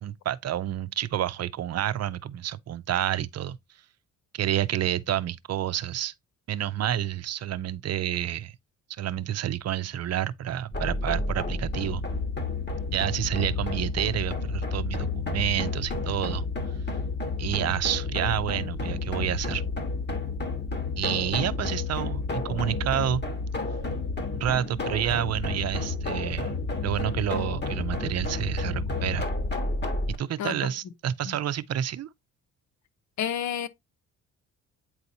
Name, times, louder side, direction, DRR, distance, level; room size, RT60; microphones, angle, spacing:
voice 1, 0.0-3.6 4.3-6.1 6.5-8.5 9.0-12.0 12.9-16.4 17.4-19.6 21.0-23.2 24.3-26.5 26.8-29.3 30.2-32.1, right 11 dB, 55° right, 0.6 m, -29 dB
sound 1, 10.7-30.2, left 3 dB, 35° left, 1.5 m, -31 dB
voice 2, 33.2-33.7, left 9 dB, 65° left, 0.9 m, -29 dB
8.8 x 4.1 x 2.7 m
cardioid pair, 90°, 30 cm